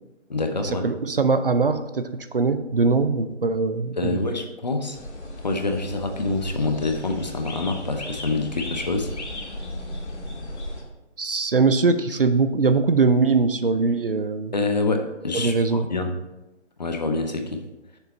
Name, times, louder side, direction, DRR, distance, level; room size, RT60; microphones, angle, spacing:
voice 1, 0.3-0.9 4.0-5.0 5.4-9.1 14.5-16.1 16.8-17.6, left 3 dB, 35° left, 5 dB, 0.7 m, -26 dB
voice 2, 0.8-4.2 11.2-14.5 15.3-15.9, right 4 dB, 50° right, 10 dB, 0.5 m, -21 dB
sound 1, 4.9-10.8, left 1 dB, 65° left, 2.2 m, -35 dB
6.9 x 6.8 x 4.2 m, 0.98 s
figure-of-eight pair, 165°, 36 cm